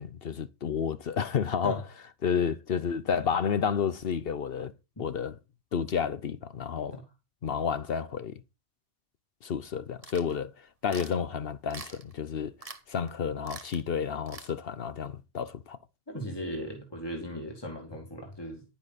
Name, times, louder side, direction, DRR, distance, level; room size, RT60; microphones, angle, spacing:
voice 1, 0.0-1.8 2.2-4.7 5.0-5.4 5.7-7.0 7.4-8.4 9.4-10.5 10.8-12.5 12.9-15.8, left 7 dB, 60° left, 0.9 m, -30 dB
sound 1, 10.0-10.4 10.9-11.2 11.7-12.1 12.6-12.8 13.1-13.2 13.4-13.8 14.3-14.5, right 4 dB, 35° right, 1.2 m, -44 dB
voice 2, 16.1-18.6, equal, 20° left, 2.6 m, -37 dB
11.0 x 10.0 x 4.1 m
omnidirectional pair, 1.2 m